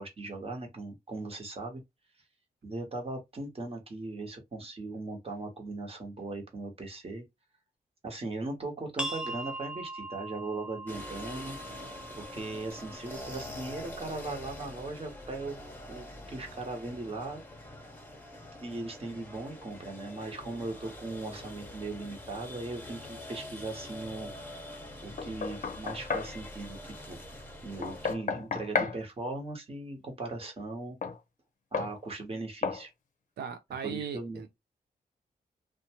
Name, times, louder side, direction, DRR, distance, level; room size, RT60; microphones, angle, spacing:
voice 1, 0.0-1.8 2.6-7.2 8.0-11.6 12.2-15.6 15.9-17.4 17.7-17.8 18.6-27.2 27.6-31.0 31.7-32.9 33.8-34.4, right 2 dB, 35° right, 1.1 m, -39 dB
sound 1, 9.0-14.4, right 2 dB, 5° right, 0.4 m, -41 dB
sound 2, 10.9-28.1, left 1 dB, 10° left, 0.8 m, -45 dB
Knock, 25.2-26.3 27.8-29.0 31.0-31.2 31.7-32.0 32.6-32.8, left 5 dB, 50° left, 0.6 m, -32 dB
voice 2, 33.4-34.6, right 7 dB, 85° right, 0.4 m, -38 dB
2.6 x 2.2 x 2.8 m
wide cardioid pair, 100°, 16 cm